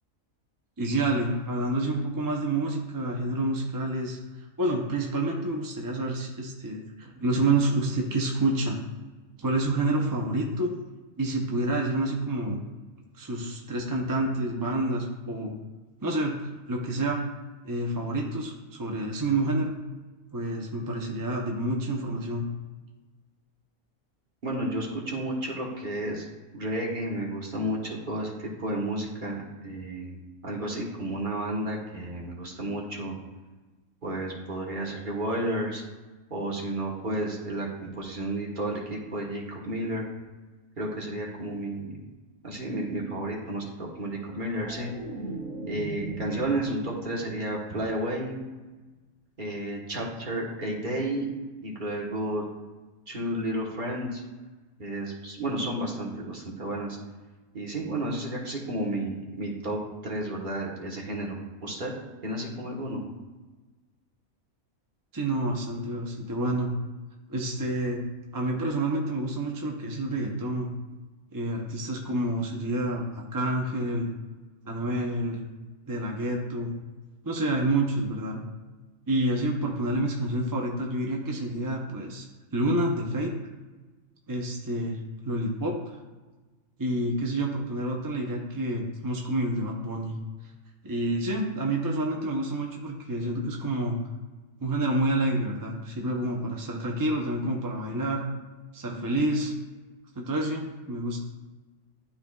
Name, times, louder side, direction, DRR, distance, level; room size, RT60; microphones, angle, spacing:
voice 1, 0.8-8.8 9.4-10.7 11.2-12.6 13.1-15.6 16.0-17.2 17.6-19.7 20.3-22.5 65.1-66.7 67.3-68.0 68.3-70.7 71.3-74.1 74.6-75.4 75.9-76.7 77.2-78.4 79.1-82.3 82.5-83.3 84.3-85.0 85.2-85.7 86.8-90.1 90.8-94.0 94.6-98.2 98.7-99.5 100.2-101.2, right 1 dB, 20° right, -1 dB, 0.5 m, -28 dB
voice 2, 24.4-26.3 26.5-29.4 29.6-33.1 34.0-35.8 36.3-40.1 40.8-42.1 42.4-44.9 45.6-48.4 49.4-51.3 51.6-52.4 53.1-54.2 54.8-57.0 57.5-61.4 61.6-61.9 62.2-63.0, right 1 dB, 40° right, -2 dB, 1.3 m, -32 dB
sound 1, 44.1-47.3 47.6-48.0, right 1 dB, 70° right, 1.8 m, -39 dB
12.0 x 4.2 x 2.3 m, 1.2 s
omnidirectional pair, 1.4 m